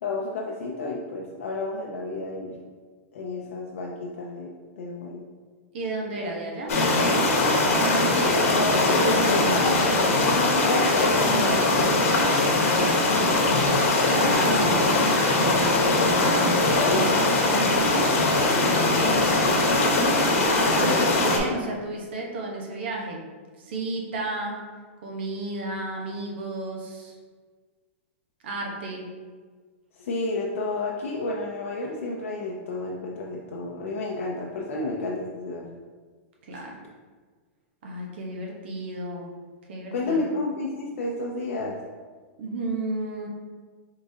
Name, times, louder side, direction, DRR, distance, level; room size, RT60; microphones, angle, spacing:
voice 1, 0.0-2.6 3.1-4.5 4.8-5.3 6.2-6.4 8.1-11.8 16.6-17.3 18.3-18.8 30.0-35.7 36.5-36.6 39.9-41.8, left 2 dB, 70° left, -2 dB, 0.6 m, -31 dB
voice 2, 5.7-7.4 12.7-15.0 15.3-15.8 17.9-18.1 19.1-19.4 20.5-23.2 23.6-24.6 25.0-27.2 28.4-29.1 36.5-36.8 37.8-39.3 39.7-40.2 42.4-43.3, right 2 dB, 50° right, -1 dB, 0.8 m, -33 dB
sound 1, 6.7-21.4, left 2 dB, 85° left, 1.0 m, -21 dB
4.8 x 3.7 x 2.7 m, 1.5 s
supercardioid pair, 180°, 7 cm